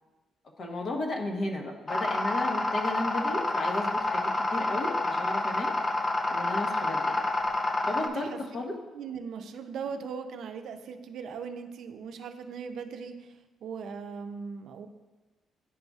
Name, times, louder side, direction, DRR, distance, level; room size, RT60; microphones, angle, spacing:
voice 1, 0.6-5.7 6.3-7.2 7.9-8.8, left 1 dB, 55° left, 1 dB, 1.1 m, -34 dB
sound 1, 1.9-8.1, left 2 dB, 30° left, 0.5 m, -28 dB
voice 2, 8.0-8.4 8.9-13.3 13.6-14.9, right 6 dB, 70° right, 7 dB, 0.5 m, -39 dB
10.5 x 4.0 x 2.4 m, 1.2 s
cardioid pair, 90°, 0 cm